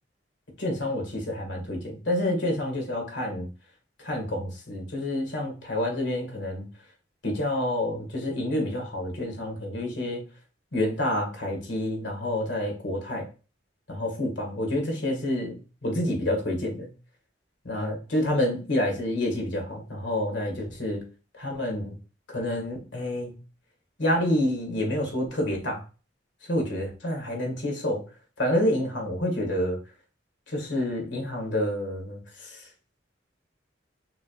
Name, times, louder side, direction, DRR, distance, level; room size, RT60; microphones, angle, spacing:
voice 1, 0.6-3.5 4.0-6.7 7.2-10.2 10.7-13.3 13.9-15.6 15.8-16.9 17.6-21.0 21.3-21.9 22.3-23.3 24.0-25.8 26.4-28.0 28.4-29.8 30.5-32.7, left 1 dB, 80° left, 2 dB, 1.9 m, -28 dB
6.0 x 3.5 x 2.4 m, 0.34 s
head